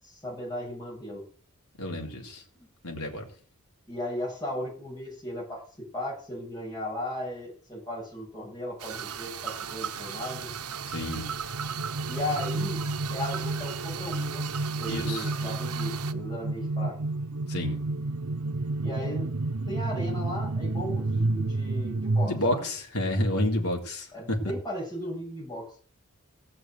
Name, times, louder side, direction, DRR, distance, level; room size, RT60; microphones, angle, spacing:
voice 1, 0.0-1.2 2.5-2.7 3.9-10.5 11.9-12.8 13.1-17.0 18.8-19.3 19.7-22.7 24.1-25.7, left 1 dB, 20° left, -3 dB, 7.8 m, -36 dB
voice 2, 1.8-2.4 2.8-3.3 10.9-11.3 14.9-15.3 17.5-17.8 22.2-24.4, left 1 dB, 80° left, 1 dB, 3.9 m, -30 dB
sound 1, 8.8-16.1, right 8 dB, 85° right, 1.1 m, -37 dB
sound 2, 9.5-22.3, right 2 dB, 65° right, 0.8 m, -31 dB
17.0 x 6.5 x 7.8 m, 0.43 s
head